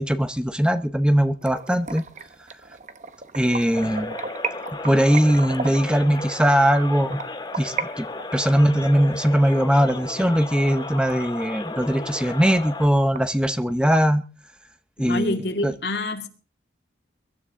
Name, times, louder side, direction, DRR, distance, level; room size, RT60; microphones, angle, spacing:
voice 1, 0.0-2.0 3.3-4.1 4.8-7.2 7.6-8.1 8.3-14.2 15.0-15.4 15.6-15.7, equal, 5° right, 0.7 m, -20 dB
sound 1, 1.4-7.9 8.2-10.7 11.1-11.2 11.6-11.7 12.1-12.2 12.4-13.2, right 5 dB, 40° right, 1.0 m, -35 dB
sound 2, 3.7-12.9, left 2 dB, 25° left, 2.2 m, -34 dB
voice 2, 15.1-16.3, left 2 dB, 65° left, 2.3 m, -27 dB
22.5 x 12.5 x 3.7 m
head